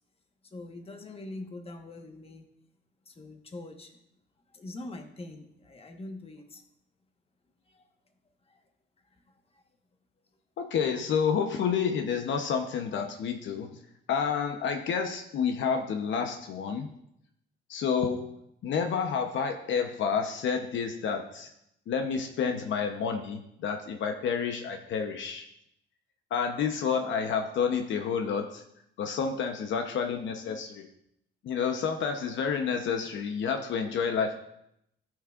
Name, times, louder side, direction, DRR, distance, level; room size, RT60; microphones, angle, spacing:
voice 1, 0.4-2.5 3.0-4.0 4.5-6.6 7.7-7.8 8.5-8.6 9.1-9.2 9.5-9.6, left 2 dB, 30° left, 4 dB, 1.3 m, -43 dB
voice 2, 10.6-13.7 14.1-16.9 17.7-18.3 18.6-21.5 21.9-25.5 26.3-28.6 29.0-30.8 31.4-34.3, left 6 dB, 70° left, 4 dB, 0.9 m, -29 dB
13.0 x 6.2 x 2.5 m, 0.77 s
cardioid pair, 90°, 20 cm